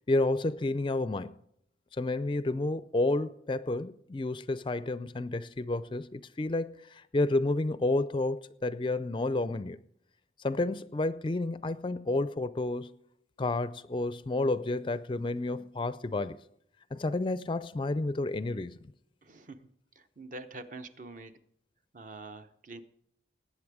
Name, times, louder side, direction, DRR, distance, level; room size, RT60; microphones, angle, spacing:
voice 1, 0.1-1.4 2.0-9.8 10.4-12.9 13.4-16.4 16.9-18.8, left 2 dB, 25° left, 0.4 m, -30 dB
voice 2, 19.2-19.7 20.0-21.3 21.9-22.8, right 2 dB, 45° right, 0.8 m, -45 dB
19.0 x 8.3 x 4.9 m
head